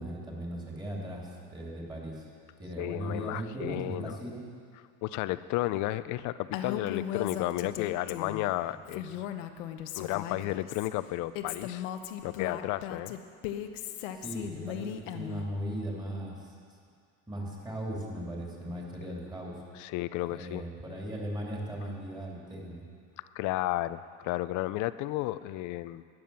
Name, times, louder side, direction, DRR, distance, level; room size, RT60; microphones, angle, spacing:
voice 1, 0.0-2.2 2.6-4.4 9.1-9.2 14.1-16.5 17.3-19.6 20.3-22.8, right 1 dB, 10° right, -3 dB, 2.9 m, -38 dB
voice 2, 2.8-4.2 5.0-9.2 10.0-11.9 12.2-13.2 19.7-20.7 23.4-26.0, left 16 dB, 55° left, 15 dB, 0.5 m, -33 dB
Female speech woman speaking, 6.5-8.5 8.9-10.9 11.3-15.5, left 10 dB, 90° left, 0.9 m, -37 dB
12.5 x 9.3 x 7.0 m, 2.2 s
supercardioid pair, 130°, 37 cm